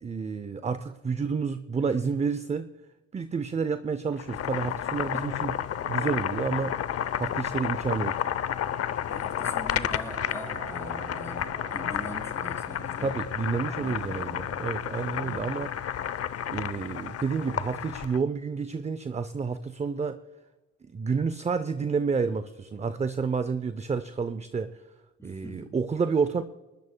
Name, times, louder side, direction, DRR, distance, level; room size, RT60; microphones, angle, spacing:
voice 1, 0.0-2.7 3.1-5.6 5.9-6.8 7.2-8.2 13.0-16.0 16.5-20.2 20.9-24.8 25.2-26.4, right 5 dB, 20° right, 12 dB, 0.5 m, -30 dB
Boiling, 4.1-18.2, left 9 dB, 55° left, 0.6 m, -31 dB
voice 2, 5.1-5.5 9.1-13.1 13.6-14.5 15.1-15.5 25.2-25.7, left 1 dB, 10° left, -1 dB, 6.2 m, -42 dB
sound 1, 8.7-16.3, right 5 dB, 80° right, 4.5 m, -48 dB
21.0 x 20.0 x 2.2 m, 1.2 s
cardioid pair, 90°, 30 cm